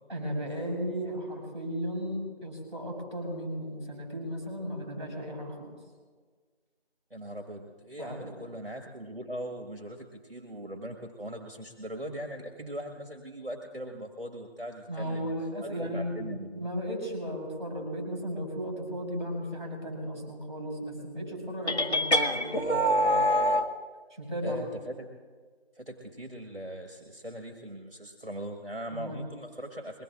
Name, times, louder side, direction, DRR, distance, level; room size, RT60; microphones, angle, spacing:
voice 1, 0.1-5.7 8.0-8.4 14.9-23.2 24.2-24.6 28.9-29.2, equal, 25° right, 0 dB, 5.5 m, -35 dB
voice 2, 7.1-16.7 24.4-25.1 25.7-30.0, equal, 60° right, 3 dB, 1.7 m, -40 dB
sound 1, 21.7-23.7, equal, 90° left, 1.6 m, -25 dB
22.5 x 18.0 x 2.5 m, 1.5 s
figure-of-eight pair, 180°, 32 cm